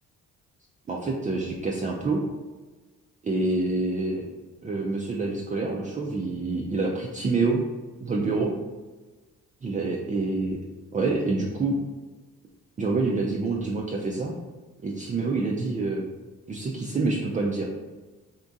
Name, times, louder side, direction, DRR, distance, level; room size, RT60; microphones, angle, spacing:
voice 1, 0.9-2.2 3.2-4.2 4.6-7.6 8.0-8.5 9.6-10.6 10.9-11.8 12.8-14.3 14.8-16.0 16.5-17.7, right 3 dB, 25° right, -1 dB, 0.4 m, -27 dB
3.6 x 2.4 x 3.9 m, 1.3 s
cardioid pair, 90°, 30 cm